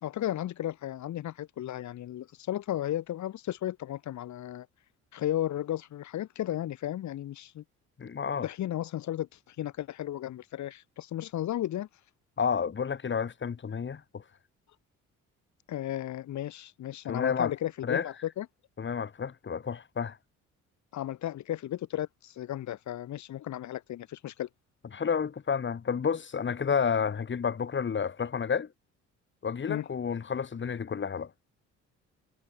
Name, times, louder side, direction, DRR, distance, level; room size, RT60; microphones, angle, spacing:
voice 1, 0.0-4.7 5.1-7.6 8.4-11.9 15.7-18.5 20.9-24.5 29.7-29.9, left 12 dB, 70° left, 3.0 m, -34 dB
voice 2, 8.0-8.5 12.4-14.2 17.1-17.5 17.8-18.1 18.8-20.2 24.9-28.7 29.4-31.3, left 6 dB, 40° left, 3.4 m, -30 dB
cardioid pair, 80°, 29 cm